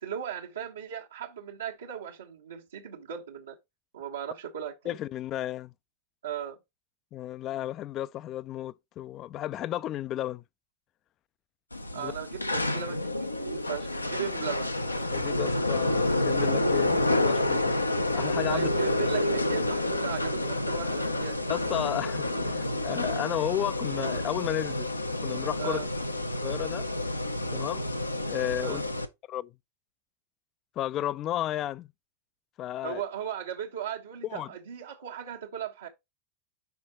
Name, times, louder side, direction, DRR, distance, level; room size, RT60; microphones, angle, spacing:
voice 1, 0.0-3.6 3.9-5.0 6.2-6.6 11.9-14.7 18.5-21.4 25.6-25.9 28.6-28.8 32.8-35.9, right 9 dB, 70° right, 1.3 m, -37 dB
voice 2, 4.9-5.7 7.1-10.4 11.9-12.1 15.1-17.8 18.1-18.7 21.5-24.9 25.2-25.8 26.4-26.9 27.5-27.8 28.3-28.8 29.3-29.5 30.8-31.9 32.6-33.0 34.3-34.5, left 13 dB, 35° left, 0.4 m, -33 dB
sound 1, 11.7-29.0, left 1 dB, 85° left, 0.7 m, -29 dB
5.7 x 5.1 x 4.4 m
figure-of-eight pair, 90°, 0 cm